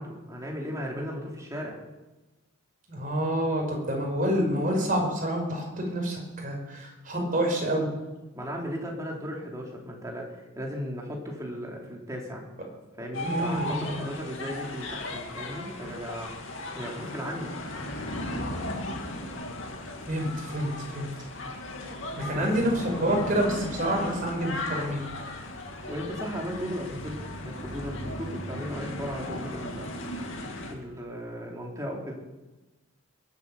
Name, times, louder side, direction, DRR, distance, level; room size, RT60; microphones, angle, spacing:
voice 1, 0.0-1.8 8.3-12.4 13.0-17.5 22.4-22.5 25.9-29.9 30.7-32.2, equal, 15° right, -1 dB, 3.2 m, -36 dB
voice 2, 2.9-7.9 13.2-14.0 20.1-21.1 22.1-25.0, right 1 dB, 40° right, 0 dB, 5.1 m, -28 dB
sound 1, 13.1-30.7, left 1 dB, 65° left, 2.5 m, -36 dB
22.0 x 8.4 x 7.0 m, 1.1 s
head